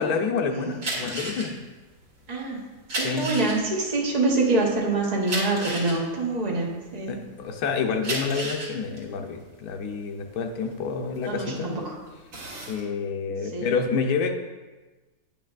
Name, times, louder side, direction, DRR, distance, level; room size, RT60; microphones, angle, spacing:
voice 1, 0.0-1.5 2.9-3.3 7.1-11.7 12.7-14.3, left 5 dB, 85° left, 4 dB, 1.2 m, -28 dB
sound 1, 0.7-7.3 7.8-11.7 12.1-12.8, right 1 dB, 75° right, 2.1 m, -33 dB
voice 2, 2.3-2.6 2.9-7.2 11.2-11.9 13.5-13.7, right 2 dB, 30° right, -3 dB, 1.0 m, -26 dB
9.2 x 5.5 x 2.4 m, 1.2 s
omnidirectional pair, 1.6 m